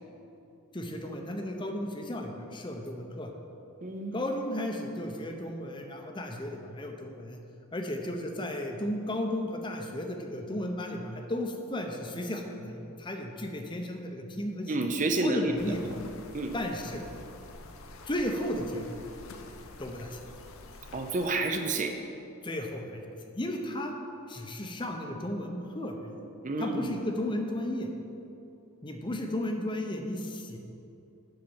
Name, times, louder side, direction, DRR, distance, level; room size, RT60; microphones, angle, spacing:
voice 1, 0.7-3.3 4.1-7.4 7.7-14.7 15.2-15.9 16.5-17.0 18.1-18.9 19.8-20.2 22.4-23.9 24.3-26.1 26.6-27.9 28.8-30.6, left 1 dB, 20° left, 3 dB, 0.7 m, -34 dB
voice 2, 3.8-4.2 14.7-15.8 16.3-16.6 20.9-22.0 26.4-27.0, right 2 dB, 35° right, 5 dB, 0.6 m, -30 dB
sound 1, 15.6-21.3, left 2 dB, 65° left, 0.7 m, -48 dB
7.8 x 5.7 x 7.1 m, 2.8 s
head